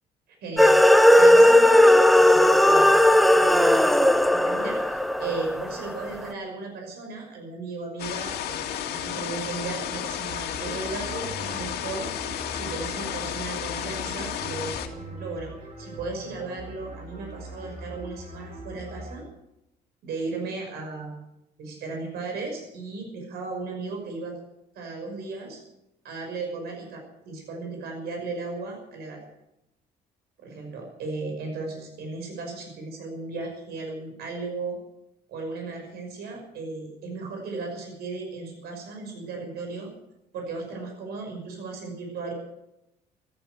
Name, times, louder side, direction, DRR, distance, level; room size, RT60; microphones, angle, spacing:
voice 1, 0.4-0.8 1.1-3.0 3.3-4.0 4.3-12.1 12.5-15.5 15.8-19.2 20.0-21.2 21.6-24.4 24.7-25.6 26.0-29.2 30.4-34.8 35.3-39.9 40.3-42.3, right 3 dB, 70° right, 3 dB, 6.0 m, -35 dB
sound 1, 0.6-6.0, left 1 dB, ahead, 0.8 m, -16 dB
sound 2, 8.0-14.9, left 10 dB, 70° left, 2.3 m, -32 dB
sound 3, 10.3-19.2, right 2 dB, 50° right, 6.9 m, -41 dB
15.5 x 14.0 x 6.5 m, 0.86 s
cardioid pair, 110°, 17 cm